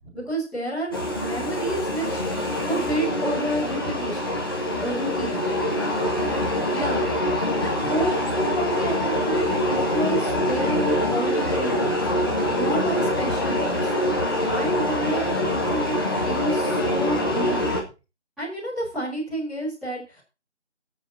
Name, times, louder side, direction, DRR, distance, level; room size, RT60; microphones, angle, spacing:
voice 1, 0.1-4.4 4.8-5.4 5.7-6.2 6.7-7.1 7.6-12.1 12.5-13.9 14.3-16.0 16.2-17.6 18.4-20.2, right 1 dB, ahead, -16 dB, 2.0 m, -30 dB
sound 1, 0.9-17.8, left 1 dB, 20° left, 1.6 m, -24 dB
23.5 x 8.0 x 2.8 m, 0.30 s
figure-of-eight pair, 165°, 34 cm